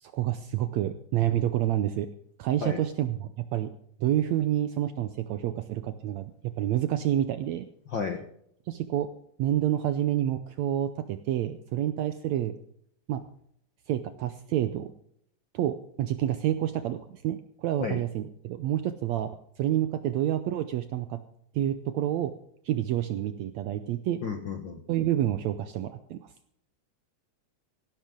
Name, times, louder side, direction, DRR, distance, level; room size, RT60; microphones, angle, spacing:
voice 1, 0.0-2.1 2.4-3.7 4.0-7.7 8.7-9.1 9.4-12.5 13.1-13.2 13.9-14.9 15.5-21.2 21.5-22.3 22.6-24.2 24.9-26.3, right 12 dB, 75° right, 10 dB, 1.6 m, -28 dB
voice 2, 7.9-8.2 17.8-18.0 24.2-24.8, left 5 dB, 70° left, 5 dB, 1.1 m, -32 dB
17.0 x 11.5 x 3.8 m, 0.69 s
omnidirectional pair, 3.8 m